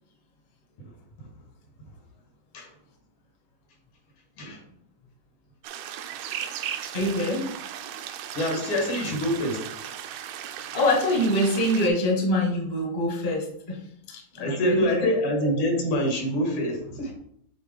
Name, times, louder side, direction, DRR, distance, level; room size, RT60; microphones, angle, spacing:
sound 1, 5.6-11.9, right 10 dB, 80° right, 1.5 m, -36 dB
voice 1, 6.9-7.5 10.7-13.8 14.1-15.1, left 1 dB, 40° left, 0 dB, 0.6 m, -25 dB
voice 2, 8.3-9.7 14.4-17.1, equal, 85° left, 0 dB, 3.1 m, -25 dB
8.0 x 3.8 x 3.4 m, 0.69 s
omnidirectional pair, 3.3 m